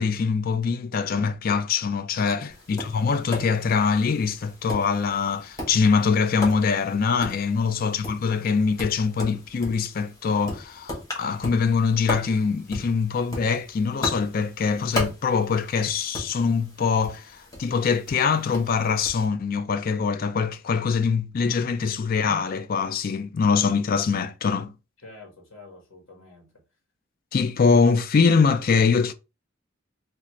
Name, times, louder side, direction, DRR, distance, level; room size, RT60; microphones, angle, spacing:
voice 1, 0.0-17.3 17.6-24.7 27.3-29.1, left 5 dB, 45° left, 0.4 m, -23 dB
Tap, 2.5-19.3, left 1 dB, 15° left, 1.1 m, -37 dB
voice 2, 25.0-26.6, left 3 dB, 80° left, 1.4 m, -48 dB
3.3 x 2.5 x 3.1 m
head